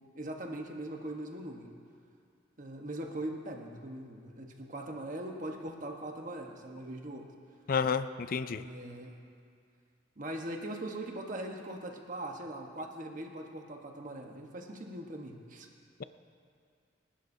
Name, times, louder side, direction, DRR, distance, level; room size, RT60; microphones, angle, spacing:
voice 1, 0.1-1.7 2.6-7.3 8.5-9.1 10.2-15.7, right 1 dB, 40° right, 2 dB, 1.2 m, -41 dB
voice 2, 7.7-8.6, left 6 dB, 45° left, 13 dB, 0.4 m, -30 dB
28.5 x 11.5 x 2.7 m, 2.3 s
head